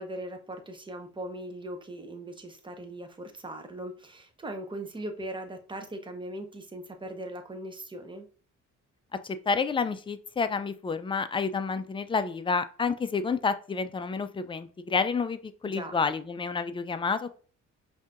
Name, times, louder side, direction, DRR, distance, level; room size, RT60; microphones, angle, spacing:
voice 1, 0.0-8.3 15.6-15.9, right 1 dB, 15° right, 5 dB, 0.8 m, -39 dB
voice 2, 9.2-17.4, left 5 dB, 15° left, 11 dB, 0.4 m, -29 dB
5.4 x 2.7 x 2.5 m, 0.41 s
cardioid pair, 90°, 30 cm